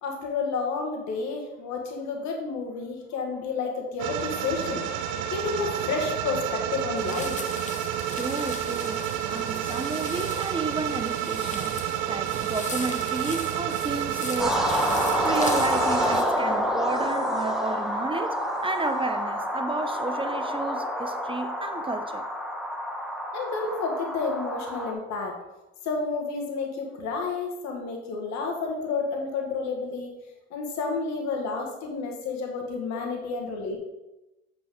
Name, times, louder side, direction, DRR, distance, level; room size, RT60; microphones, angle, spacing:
voice 1, 0.0-4.9 5.3-7.4 23.3-25.3 25.8-30.1 30.5-33.8, left 4 dB, 70° left, 1.5 m, -30 dB
sound 1, 4.0-16.2, right 10 dB, 75° right, 0.5 m, -30 dB
sound 2, 7.0-16.2, left 4 dB, 25° left, 1.0 m, -40 dB
voice 2, 8.2-11.8 12.1-22.3 33.0-33.2, right 3 dB, 20° right, 0.6 m, -32 dB
sound 3, 14.4-24.9, equal, ahead, 1.2 m, -28 dB
8.0 x 4.4 x 3.7 m
hypercardioid pair, 50°, 29 cm